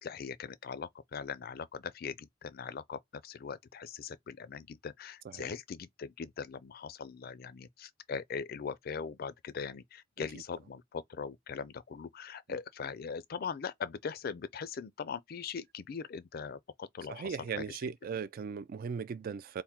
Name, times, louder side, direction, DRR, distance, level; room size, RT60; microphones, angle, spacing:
voice 1, 0.0-17.9, left 6 dB, 50° left, 0.4 m, -41 dB
voice 2, 17.1-19.6, right 6 dB, 50° right, 0.3 m, -38 dB
3.6 x 2.1 x 4.3 m
head